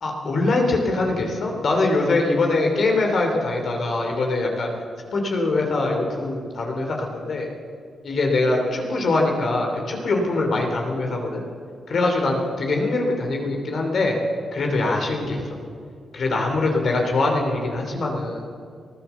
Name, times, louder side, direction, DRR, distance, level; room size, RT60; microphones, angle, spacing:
voice 1, 0.0-4.7 5.1-7.5 8.0-11.4 11.9-14.2 14.5-15.6 16.1-18.5, left 2 dB, 60° left, 1 dB, 2.9 m, -23 dB
19.0 x 10.5 x 7.0 m, 2.2 s
cardioid pair, 60°, 0 cm